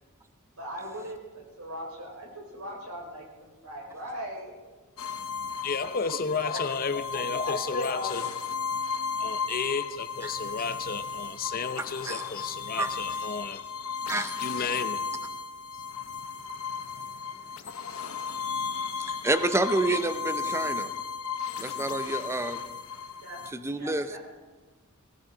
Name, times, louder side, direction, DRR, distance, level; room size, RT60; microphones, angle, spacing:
voice 1, 0.5-4.5 5.8-6.6 6.9-8.4 23.2-23.4 23.8-24.2, equal, 85° right, 5.2 m, -41 dB
sound 1, 5.0-23.5, left 6 dB, 75° left, 0.9 m, -34 dB
voice 2, 5.6-8.3 9.2-13.6 14.4-15.0, left 5 dB, 40° left, 0.8 m, -32 dB
voice 3, 11.8-12.2 12.8-12.9 14.1-14.4 19.0-20.9 21.6-22.6 23.5-24.1, right 2 dB, 10° right, 0.6 m, -29 dB
18.5 x 16.5 x 3.9 m
head